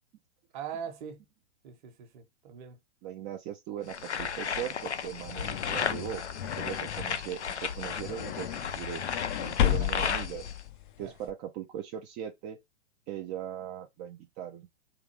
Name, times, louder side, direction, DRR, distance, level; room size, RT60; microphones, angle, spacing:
voice 1, 0.5-1.2 1.6-2.8 9.7-9.9 11.0-11.1, right 7 dB, 45° right, 1.3 m, -41 dB
voice 2, 3.0-6.2 6.5-9.0 9.4-10.5 11.0-12.6 13.1-14.7, right 10 dB, 25° right, 0.6 m, -39 dB
sound 1, 3.9-10.6, left 7 dB, 90° left, 0.5 m, -35 dB
sound 2, 4.9-11.3, left 12 dB, 50° left, 0.6 m, -34 dB
3.9 x 2.6 x 4.7 m
figure-of-eight pair, 110°, 33 cm